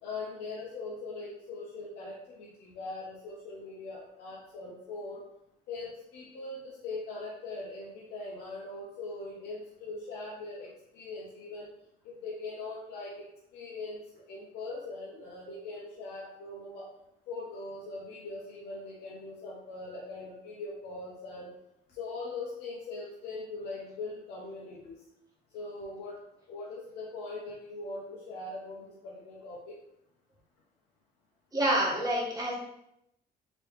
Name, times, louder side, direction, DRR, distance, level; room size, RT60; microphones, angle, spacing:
voice 1, 0.0-5.2 5.7-11.7 12.0-13.1 13.5-16.9 17.3-21.5 21.9-25.0 25.5-26.2 26.5-29.8, left 3 dB, 85° left, -4 dB, 0.8 m, -41 dB
voice 2, 31.5-32.6, right 1 dB, 20° right, -3 dB, 1.1 m, -27 dB
3.3 x 3.0 x 3.2 m, 0.78 s
cardioid pair, 110°, 17 cm